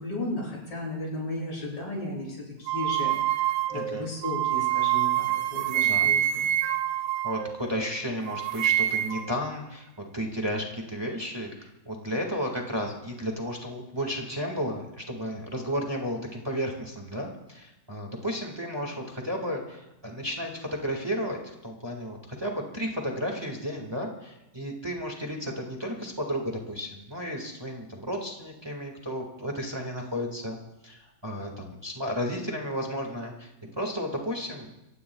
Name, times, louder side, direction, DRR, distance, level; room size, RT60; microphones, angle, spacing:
voice 1, 0.0-5.2 5.5-6.5, left 1 dB, 85° left, -4 dB, 8.2 m, -35 dB
sound 1, 2.7-7.9 8.3-9.3, right 12 dB, 85° right, 1.4 m, -26 dB
voice 2, 3.7-4.1 5.8-6.1 7.2-30.6 30.8-34.7, equal, 15° right, 1 dB, 1.9 m, -33 dB
27.0 x 16.0 x 2.4 m, 0.92 s
omnidirectional pair, 1.9 m